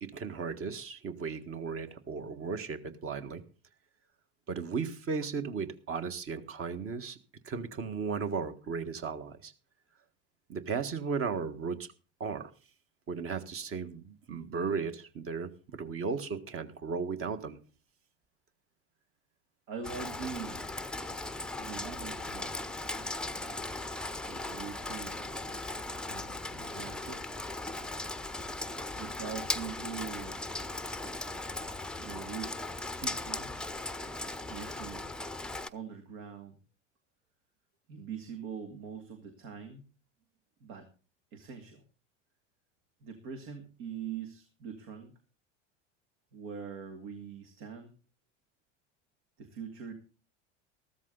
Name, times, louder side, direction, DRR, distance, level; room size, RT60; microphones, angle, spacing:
voice 1, 0.0-3.4 4.5-7.2 7.5-9.5 10.5-11.9 12.2-12.5 13.1-17.6, right 5 dB, 35° right, 9 dB, 1.6 m, -35 dB
voice 2, 19.7-20.7 21.5-22.7 24.3-25.2 26.1-27.3 28.9-30.4 32.0-32.6 32.9-33.6 34.5-35.1 35.7-36.6 37.9-39.8 40.6-40.9 41.3-41.8 43.0-45.2 46.3-47.9 49.4-49.9, right 7 dB, 65° right, 5 dB, 2.3 m, -43 dB
Rain, 19.8-35.7, left 2 dB, ahead, 0.7 m, -38 dB
14.5 x 13.0 x 4.0 m, 0.35 s
hypercardioid pair, 85°, 36 cm